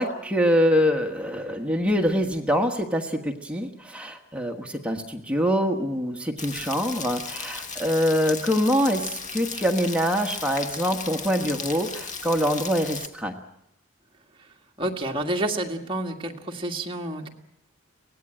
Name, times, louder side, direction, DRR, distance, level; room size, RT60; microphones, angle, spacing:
voice 1, 0.0-13.3, equal, 5° right, 2 dB, 1.3 m, -24 dB
Rain, 6.4-13.1, left 5 dB, 35° left, 1.2 m, -36 dB
voice 2, 14.8-17.3, right 1 dB, 25° right, 1 dB, 1.9 m, -29 dB
24.0 x 18.5 x 9.0 m, 0.84 s
head